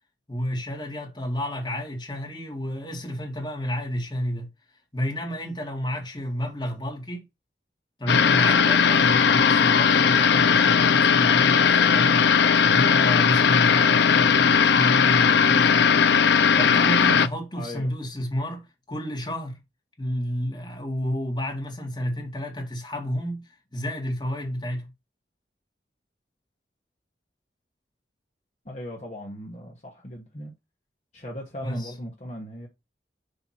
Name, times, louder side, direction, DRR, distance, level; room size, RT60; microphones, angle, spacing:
voice 1, 0.3-4.5 4.9-7.2 8.0-16.2 16.5-18.6 18.9-19.6 20.0-23.4 23.7-24.9 31.6-31.9, equal, 25° left, 1.7 m, -30 dB
sound 1, 8.1-17.3, left 6 dB, 70° left, 0.5 m, -18 dB
voice 2, 8.1-8.5 17.5-17.9 28.6-30.5 31.1-32.7, left 1 dB, 40° left, 1.3 m, -38 dB
6.9 x 2.9 x 5.6 m
head